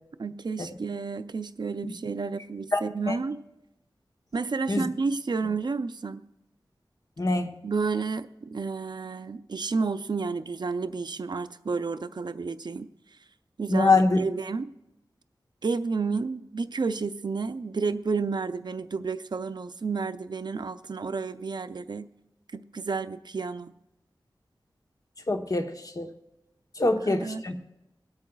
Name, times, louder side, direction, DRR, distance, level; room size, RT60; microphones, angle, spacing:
voice 1, 0.2-3.4 4.3-6.3 7.6-12.9 13.6-14.7 15.6-22.1 22.5-23.7 26.8-27.4, right 4 dB, 60° right, 11 dB, 0.5 m, -31 dB
voice 2, 7.2-7.5 13.7-14.2 25.3-26.1 26.8-27.7, left 3 dB, 45° left, 5 dB, 1.0 m, -24 dB
24.0 x 8.6 x 2.3 m, 0.93 s
wide cardioid pair, 75°, 8 cm